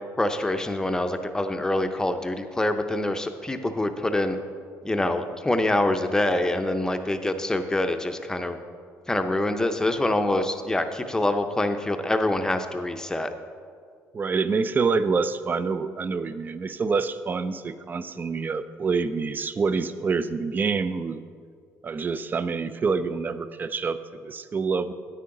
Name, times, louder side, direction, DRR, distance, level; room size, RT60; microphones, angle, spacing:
voice 1, 0.2-4.4 4.8-8.6 9.1-13.3, left 1 dB, 10° left, 7 dB, 0.6 m, -25 dB
voice 2, 14.1-21.2 21.8-24.0 24.2-24.9, right 4 dB, 30° right, 13 dB, 0.4 m, -26 dB
9.9 x 9.2 x 3.8 m, 2.1 s
cardioid pair, 105°, 6 cm